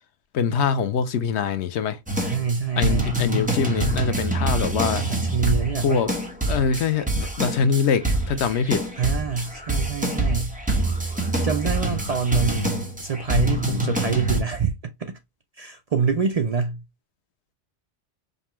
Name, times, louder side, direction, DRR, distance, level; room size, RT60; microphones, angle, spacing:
voice 1, 0.3-2.0 2.8-5.0 5.8-6.1 6.5-8.8, left 6 dB, 85° left, 0.9 m, -23 dB
sound 1, 2.1-14.4, right 1 dB, 10° right, 0.8 m, -25 dB
voice 2, 2.2-3.1 5.0-6.1 9.0-10.6 11.4-15.2 15.6-16.8, right 5 dB, 55° right, 0.4 m, -26 dB
5.2 x 2.2 x 2.9 m
omnidirectional pair, 1.1 m